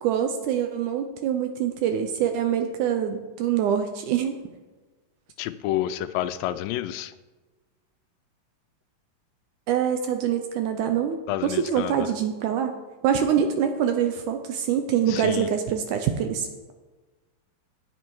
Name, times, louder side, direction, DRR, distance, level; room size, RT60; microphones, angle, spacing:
voice 1, 0.0-4.4 9.7-12.7 13.0-16.7, right 8 dB, 75° right, 6 dB, 1.9 m, -25 dB
voice 2, 5.4-7.1 11.3-12.1 15.1-15.5, left 13 dB, 85° left, 12 dB, 2.2 m, -29 dB
10.5 x 8.6 x 4.6 m, 1.2 s
omnidirectional pair, 4.0 m